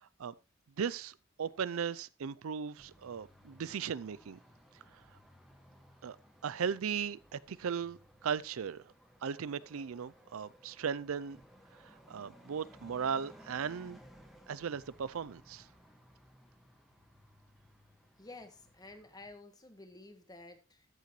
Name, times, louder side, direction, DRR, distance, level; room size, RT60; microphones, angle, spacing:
voice 1, 0.8-4.4 6.0-6.2 6.4-8.8 9.2-11.4 11.8-14.0 14.5-15.7, right 7 dB, 85° right, 0.5 m, -37 dB
sound 1, 2.8-19.3, equal, ahead, 1.6 m, -60 dB
voice 2, 18.2-20.9, left 2 dB, 20° left, 1.4 m, -52 dB
13.5 x 6.6 x 3.1 m
head